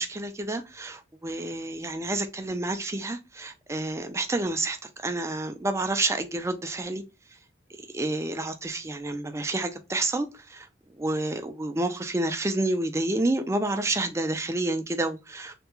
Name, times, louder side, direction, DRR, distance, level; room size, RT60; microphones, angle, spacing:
voice 1, 0.0-7.0 7.9-10.7 11.0-15.5, right 2 dB, 15° right, 0.4 m, -29 dB
3.4 x 2.3 x 2.9 m
head